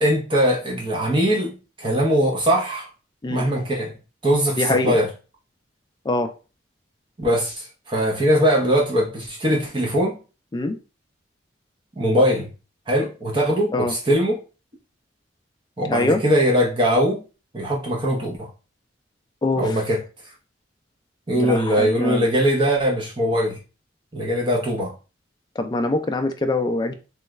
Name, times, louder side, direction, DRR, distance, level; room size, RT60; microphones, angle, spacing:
voice 1, 0.0-2.9 3.3-3.9 4.2-5.1 7.2-10.2 12.0-12.5 12.9-14.4 15.8-17.2 17.5-18.5 19.6-20.0 21.3-23.6 24.1-24.9, equal, 25° right, -2 dB, 0.7 m, -21 dB
voice 2, 4.6-5.0 6.1-6.3 10.5-10.8 13.7-13.9 15.9-16.2 19.4-19.8 21.3-22.3 25.6-26.9, left 2 dB, 20° left, 6 dB, 0.3 m, -23 dB
3.1 x 2.3 x 3.1 m, 0.33 s
head